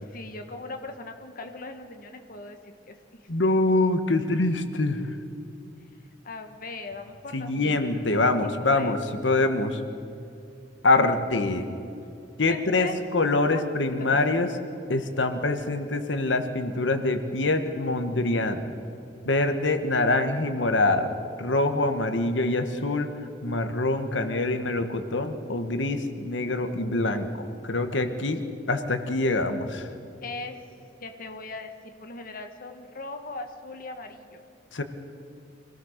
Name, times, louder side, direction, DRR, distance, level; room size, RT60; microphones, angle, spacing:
voice 1, 0.0-3.2 6.2-8.2 8.6-9.0 12.4-13.0 13.5-13.6 14.1-14.2 30.2-30.5 31.0-34.4, left 3 dB, 50° left, 6 dB, 1.3 m, -39 dB
voice 2, 3.3-5.0 7.3-9.0 9.2-9.8 10.8-11.7 12.4-14.5 14.9-18.7 19.2-23.1 23.4-27.3 27.6-28.4 28.7-29.9 34.7-34.8, left 2 dB, 90° left, 8 dB, 1.4 m, -25 dB
25.5 x 17.5 x 6.6 m, 2.7 s
head